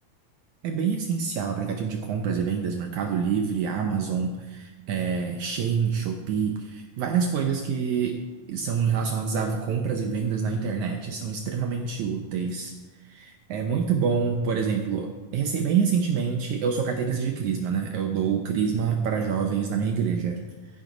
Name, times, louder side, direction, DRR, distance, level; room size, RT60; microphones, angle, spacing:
voice 1, 0.6-8.2 8.5-12.7 13.1-20.4, right 6 dB, 75° right, 3 dB, 1.9 m, -26 dB
13.5 x 10.5 x 3.9 m, 1.2 s
omnidirectional pair, 4.2 m